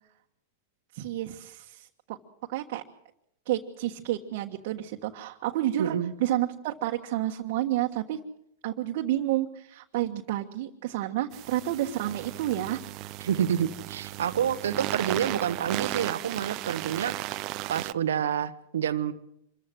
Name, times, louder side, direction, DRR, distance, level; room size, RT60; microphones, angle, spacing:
voice 1, 0.9-2.2 2.5-2.8 3.5-8.2 8.6-12.8, right 13 dB, 60° right, 0 dB, 1.5 m, -30 dB
voice 2, 5.8-6.1 13.2-17.4 17.7-19.1, right 9 dB, 90° right, 12 dB, 1.1 m, -28 dB
sound 1, 11.3-17.9, right 18 dB, 45° right, 0.7 m, -35 dB
26.0 x 15.0 x 8.0 m, 0.73 s
hypercardioid pair, 130°, 0 cm